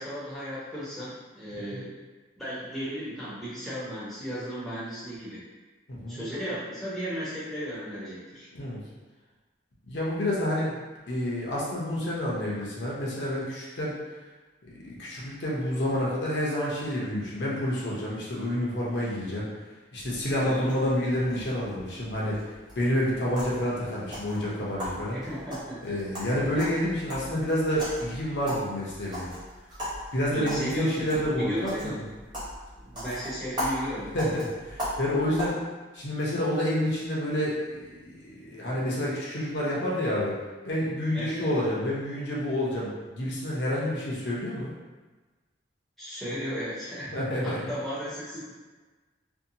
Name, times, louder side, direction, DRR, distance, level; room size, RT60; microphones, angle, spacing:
voice 1, 0.0-1.9 2.4-5.4 6.1-8.5 20.4-20.7 25.1-26.0 30.3-32.0 32.8-34.1 41.1-41.5 46.0-47.1 47.4-48.5, equal, ahead, -10 dB, 0.7 m, -35 dB
voice 2, 5.9-6.2 8.5-8.8 9.9-10.7 11.1-13.9 14.8-19.5 19.9-22.4 22.8-25.2 25.8-29.3 30.1-32.0 34.1-35.6 35.9-40.4 40.6-44.7 47.1-47.6, left 1 dB, 60° left, -5 dB, 0.6 m, -29 dB
sound 1, 20.0-35.5, equal, 20° right, 0.9 m, -39 dB
2.6 x 2.1 x 2.6 m, 1.3 s
head